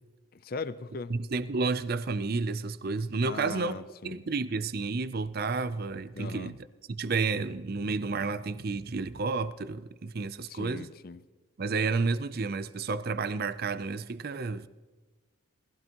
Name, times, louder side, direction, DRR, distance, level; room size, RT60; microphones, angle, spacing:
voice 1, 0.4-1.1 3.2-4.2 6.1-6.6 10.5-11.2, left 4 dB, 45° left, 0.5 m, -39 dB
voice 2, 1.1-3.8 4.0-6.6 6.9-10.9 11.6-14.7, right 4 dB, 45° right, 0.5 m, -31 dB
21.0 x 16.0 x 3.0 m
head